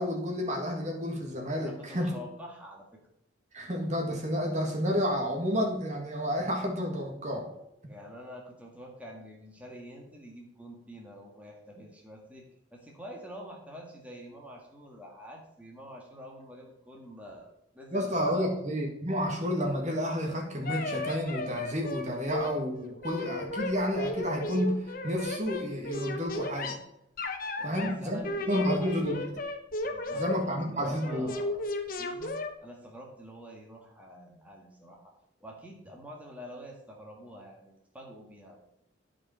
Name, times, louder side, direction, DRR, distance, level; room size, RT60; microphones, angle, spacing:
voice 1, 0.0-2.1 3.5-7.5 17.9-26.8 27.6-28.2 28.5-29.1 30.1-31.3, equal, 35° right, 1 dB, 1.8 m, -30 dB
voice 2, 1.6-2.8 7.9-18.5 27.6-29.0 29.8-31.7 32.0-32.3 32.6-35.1 35.4-38.6, equal, 5° right, -1 dB, 1.8 m, -47 dB
sound 1, 20.6-22.0 22.3-22.5 22.8-26.8 27.2-28.0 28.2-30.4 30.8-32.5, left 2 dB, 45° left, 1.1 m, -34 dB
12.0 x 5.1 x 5.6 m, 0.81 s
head